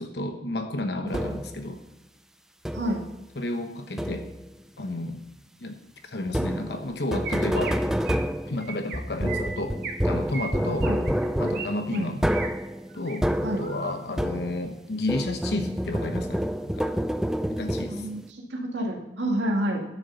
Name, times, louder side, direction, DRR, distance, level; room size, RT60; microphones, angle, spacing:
voice 1, 0.0-1.8 3.4-4.3 4.8-5.2 5.6-5.8 6.1-7.8 8.5-9.8 10.0-10.9 11.4-12.3 12.9-16.9 17.5-18.1, left 2 dB, 65° left, 6 dB, 1.0 m, -32 dB
sound 1, 1.1-1.6 2.6-3.1 4.0-4.5 6.3-14.8 15.1-18.2, equal, 5° right, 0.4 m, -28 dB
Chirp tweet, 7.2-7.7 8.1-8.3 8.6-9.0 9.3-10.0 10.3-11.7 11.9-12.5 12.9-13.2 13.6-14.0, right 6 dB, 55° right, 1.5 m, -37 dB
voice 2, 17.9-19.8, right 1 dB, 90° right, 1 dB, 2.2 m, -29 dB
11.5 x 6.8 x 6.9 m, 0.93 s
head